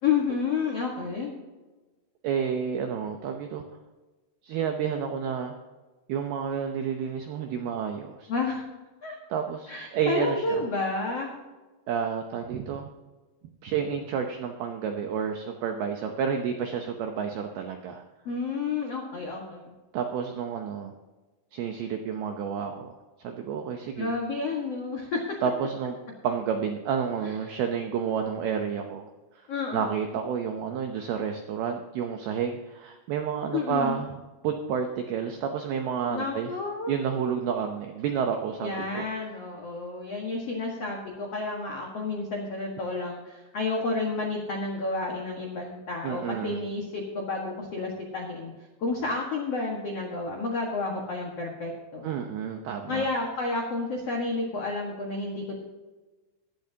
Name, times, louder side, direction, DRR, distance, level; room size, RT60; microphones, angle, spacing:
voice 1, 0.0-1.3 8.3-8.6 9.0-9.1 9.7-11.3 18.2-19.7 24.0-25.4 27.2-27.6 29.5-30.1 33.5-34.0 36.1-37.0 38.6-48.5 48.8-52.1 52.9-55.6, left 3 dB, 80° left, 0 dB, 1.4 m, -30 dB
voice 2, 2.2-3.6 4.4-5.5 6.1-8.3 9.3-10.6 11.9-12.9 13.6-18.0 19.9-20.9 21.5-24.1 25.4-26.0 26.2-29.5 29.7-34.1 34.4-36.5 36.9-39.1 46.0-46.6 52.0-53.1, right 7 dB, 80° right, 4 dB, 2.2 m, -30 dB
17.0 x 12.0 x 2.9 m, 1.2 s
omnidirectional pair, 5.7 m